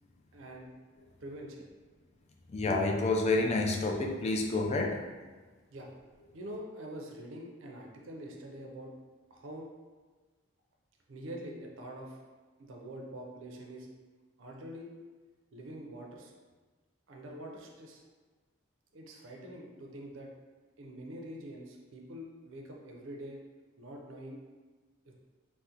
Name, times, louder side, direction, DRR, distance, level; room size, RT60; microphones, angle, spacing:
voice 1, 0.3-0.7 1.2-1.7 5.7-5.9 6.3-8.9 9.3-9.7 11.1-12.2 12.6-13.9 14.4-14.9 15.5-16.3 17.1-18.0 18.9-20.3 20.8-23.4 23.8-24.4 25.1-25.2, right 1 dB, 70° right, 0 dB, 0.5 m, -45 dB
voice 2, 2.5-5.0, left 2 dB, 30° left, 1 dB, 0.3 m, -29 dB
3.6 x 2.1 x 2.8 m, 1.3 s
head